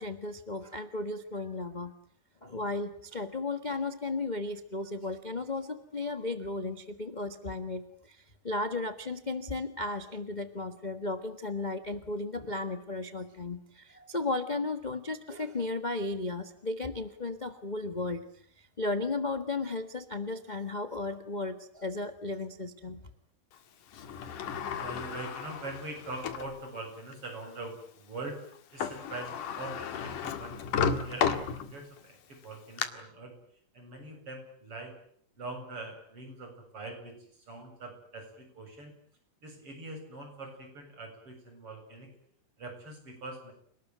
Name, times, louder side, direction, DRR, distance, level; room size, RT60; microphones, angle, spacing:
voice 1, 0.0-1.9 2.4-18.3 18.8-23.0, left 2 dB, 35° left, 8 dB, 0.7 m, -35 dB
Sliding door, 23.9-26.5 27.1-27.2 28.5-28.6 28.8-32.0 32.4-32.9, left 7 dB, 85° left, 3.4 m, -33 dB
voice 2, 24.7-28.4 28.7-33.3 33.7-34.9 35.4-37.2 37.5-38.9 39.4-42.1 42.6-43.5, right 2 dB, 45° right, 4 dB, 8.5 m, -43 dB
29.5 x 20.0 x 9.2 m, 0.64 s
omnidirectional pair, 3.5 m